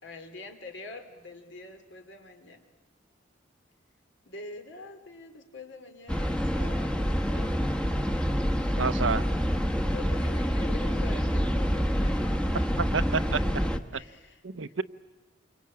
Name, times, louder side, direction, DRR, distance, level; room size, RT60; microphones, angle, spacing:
voice 1, 0.0-2.6 4.2-7.5 9.8-13.1 13.9-14.7, left 2 dB, 70° left, 6 dB, 3.1 m, -45 dB
sound 1, 6.1-13.8, equal, 5° left, 1.1 m, -27 dB
voice 2, 8.8-9.2 12.8-13.4 13.9-14.0 14.4-14.8, right 5 dB, 85° right, 13 dB, 0.8 m, -29 dB
27.5 x 24.0 x 8.7 m, 1.2 s
head